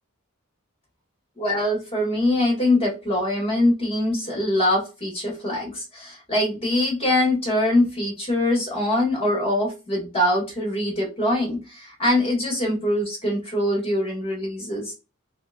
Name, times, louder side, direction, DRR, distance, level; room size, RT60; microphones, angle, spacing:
voice 1, 1.4-14.9, left 1 dB, 25° left, -2 dB, 2.0 m, -23 dB
3.5 x 3.5 x 2.5 m, 0.28 s
head